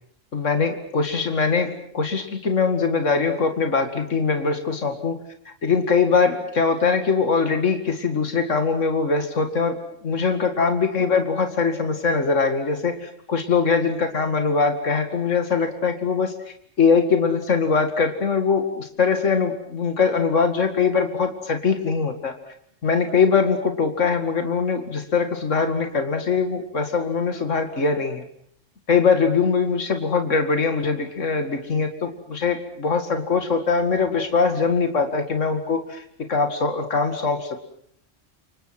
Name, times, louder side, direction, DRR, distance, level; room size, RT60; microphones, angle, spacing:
voice 1, 0.3-5.2 5.6-9.8 10.0-16.3 16.8-22.3 22.8-28.2 28.9-36.0 36.3-37.6, left 5 dB, 75° left, 6 dB, 2.5 m, -22 dB
29.5 x 26.5 x 6.1 m, 0.65 s
omnidirectional pair, 1.3 m